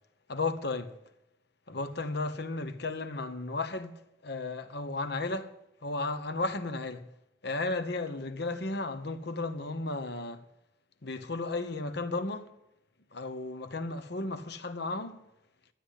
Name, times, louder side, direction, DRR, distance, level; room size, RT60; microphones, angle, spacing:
voice 1, 0.3-1.0 1.7-5.5 5.8-7.1 7.4-10.4 11.0-12.5 13.1-15.2, left 3 dB, 60° left, 1.1 m, -34 dB
12.0 x 9.9 x 8.3 m
head